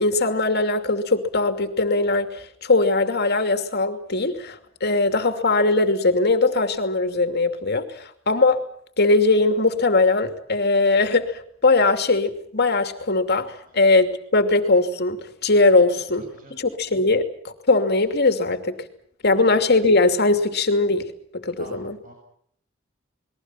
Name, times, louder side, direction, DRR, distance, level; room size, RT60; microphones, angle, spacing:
voice 1, 0.0-8.6 9.0-18.9 19.2-22.0, left 3 dB, 55° left, 8 dB, 2.7 m, -20 dB
voice 2, 16.2-16.6 19.3-19.5 21.6-22.1, right 2 dB, 45° right, 1 dB, 7.4 m, -44 dB
29.0 x 21.5 x 5.9 m, 0.65 s
head